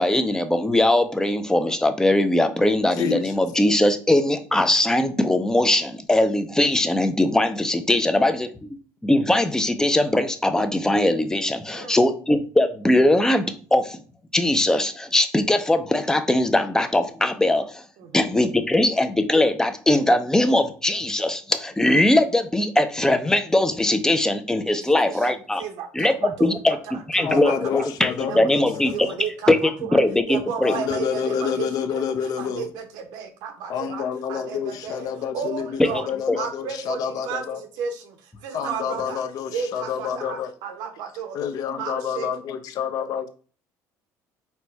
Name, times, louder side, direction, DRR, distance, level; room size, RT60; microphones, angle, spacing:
voice 1, 0.0-8.8 9.0-14.0 14.3-17.8 18.1-25.6 25.9-29.1 29.5-30.8 35.8-35.9 36.3-36.4, left 1 dB, 10° left, 0.4 m, -21 dB
voice 2, 3.0-3.3 27.2-29.2 30.6-32.6 33.7-37.6 38.5-40.5 41.3-43.3, left 7 dB, 60° left, 0.6 m, -28 dB
voice 3, 24.8-25.2 25.6-26.5 27.2-27.5 28.3-28.7 28.9-30.0 30.3-36.1 36.3-39.2 39.5-41.4 41.7-42.3, right 6 dB, 80° right, 0.8 m, -33 dB
4.3 x 2.2 x 4.4 m
cardioid pair, 115°, 7 cm